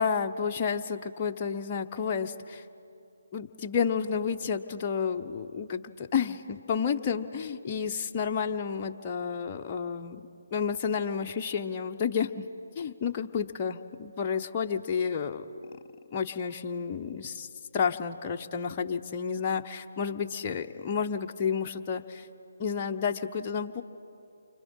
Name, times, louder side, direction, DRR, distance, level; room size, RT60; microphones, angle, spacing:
voice 1, 0.0-2.6 3.3-10.2 10.5-12.4 12.8-15.4 16.1-17.5 17.7-22.3 22.6-23.8, left 6 dB, 25° left, 2 dB, 1.0 m, -31 dB
29.5 x 25.0 x 5.6 m, 2.7 s
figure-of-eight pair, 150°, 0 cm